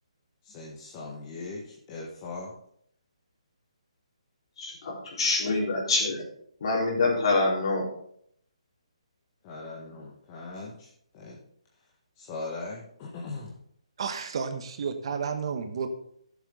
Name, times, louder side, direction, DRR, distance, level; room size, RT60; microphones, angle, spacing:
voice 1, 0.4-2.5 9.4-11.4 12.2-13.5, left 3 dB, 30° left, 1.5 m, -40 dB
voice 2, 4.6-6.3 6.6-7.8, left 3 dB, 55° left, 4.1 m, -26 dB
voice 3, 14.0-15.9, right 6 dB, 50° right, 1.2 m, -31 dB
11.5 x 7.5 x 3.9 m
hypercardioid pair, 145°, 3 cm